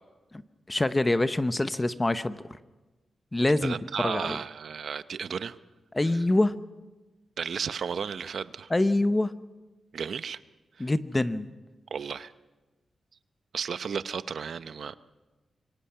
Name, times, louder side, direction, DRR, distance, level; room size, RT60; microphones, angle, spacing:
voice 1, 0.7-2.6 3.3-4.4 5.9-6.6 8.7-9.3 10.8-11.5, left 2 dB, 15° left, 12 dB, 0.8 m, -25 dB
voice 2, 3.6-5.6 6.1-6.2 7.4-8.7 9.9-10.4 10.8-10.9 11.9-12.3 13.5-15.0, right 6 dB, 65° right, 13 dB, 0.7 m, -33 dB
26.0 x 23.5 x 5.7 m, 1.2 s
wide cardioid pair, 120°, 0 cm